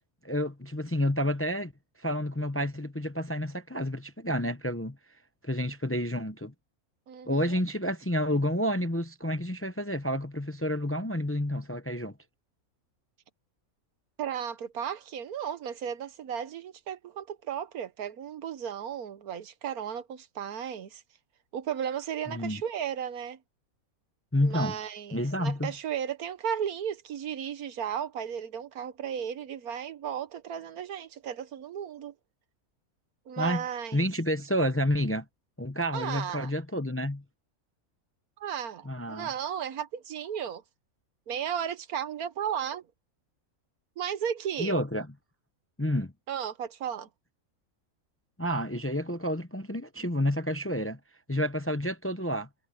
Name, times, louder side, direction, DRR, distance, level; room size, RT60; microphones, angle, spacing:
voice 1, 0.2-1.7 2.0-5.0 5.4-6.5 7.3-12.1 22.3-22.6 24.3-24.8 25.1-25.7 33.4-33.6 33.9-35.2 35.6-37.2 38.8-39.3 44.6-45.1 45.8-46.1 48.4-51.0 51.3-52.5, equal, 15° left, 0.6 m, -29 dB
voice 2, 7.1-7.6 14.2-21.0 21.5-23.4 24.4-32.1 33.3-34.0 35.9-36.5 38.4-40.6 41.3-42.8 44.0-44.8 46.3-47.1, right 8 dB, 85° right, 1.5 m, -35 dB
omnidirectional pair, 1.5 m